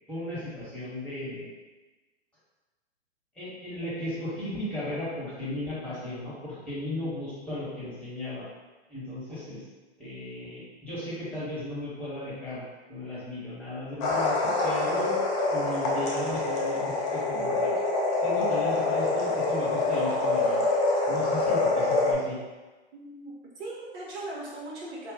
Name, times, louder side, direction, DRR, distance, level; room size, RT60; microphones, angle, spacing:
voice 1, 0.1-1.4 3.3-8.5 8.9-9.6 10.0-15.2 15.5-17.8 18.2-20.7 21.1-22.4, left 1 dB, 5° left, -10 dB, 1.3 m, -36 dB
sound 1, 14.0-22.1, left 3 dB, 20° left, 0.4 m, -26 dB
voice 2, 22.9-25.1, right 2 dB, 60° right, -5 dB, 1.1 m, -39 dB
2.5 x 2.3 x 3.8 m, 1.2 s
hypercardioid pair, 125°, 34 cm